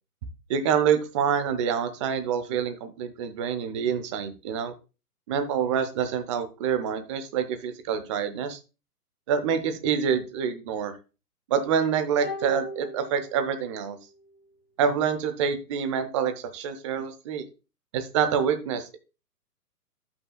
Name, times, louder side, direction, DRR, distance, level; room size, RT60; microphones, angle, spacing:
voice 1, 0.5-4.7 5.3-8.6 9.3-10.9 11.5-14.0 14.8-17.5 17.9-19.0, right 7 dB, 20° right, 9 dB, 0.6 m, -26 dB
sound 1, 12.2-13.9 14.1-14.2, left 1 dB, 25° left, 4.1 m, -37 dB
12.0 x 5.7 x 2.3 m, 0.31 s
hypercardioid pair, 140°, 47 cm